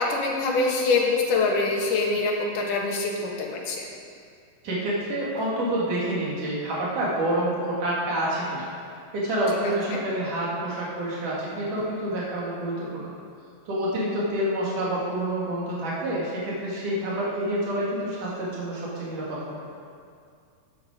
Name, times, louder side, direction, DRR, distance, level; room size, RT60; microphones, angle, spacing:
voice 1, 0.0-3.9, left 3 dB, 80° left, -1 dB, 3.1 m, -24 dB
voice 2, 4.6-8.7 9.1-13.1 13.7-19.5, right 1 dB, 70° right, -6 dB, 4.0 m, -28 dB
13.0 x 9.5 x 5.1 m, 2.3 s
omnidirectional pair, 3.7 m